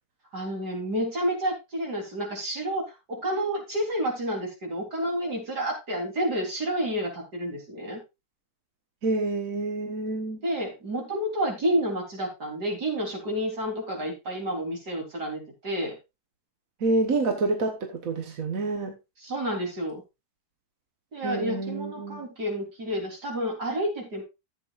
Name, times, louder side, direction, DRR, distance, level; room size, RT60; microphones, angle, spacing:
voice 1, 0.3-8.0 10.4-16.0 19.2-20.0 21.1-24.2, equal, 80° right, 4.3 m, -30 dB
voice 2, 9.0-10.4 16.8-19.0 21.2-22.2, right 3 dB, 60° right, 1.7 m, -28 dB
14.5 x 8.2 x 2.5 m
omnidirectional pair, 1.7 m